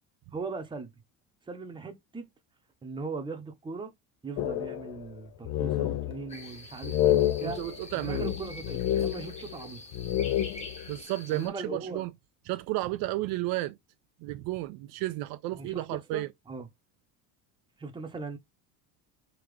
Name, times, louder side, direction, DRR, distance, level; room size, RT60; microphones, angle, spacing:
voice 1, 0.3-0.9 1.5-2.3 2.8-3.9 4.2-7.6 7.9-9.8 11.3-12.0 15.5-15.8 16.1-16.7 17.8-18.4, right 4 dB, 10° right, 0.9 m, -39 dB
sound 1, 4.4-5.2 5.4-6.4 6.8-9.6 9.9-10.9, left 12 dB, 45° left, 0.5 m, -29 dB
sound 2, 6.3-11.5, left 2 dB, 15° left, 1.3 m, -46 dB
voice 2, 7.4-8.3 10.9-12.1 12.5-13.8 14.2-16.3, right 17 dB, 60° right, 0.6 m, -32 dB
3.7 x 2.9 x 3.2 m
cardioid pair, 135°, 41 cm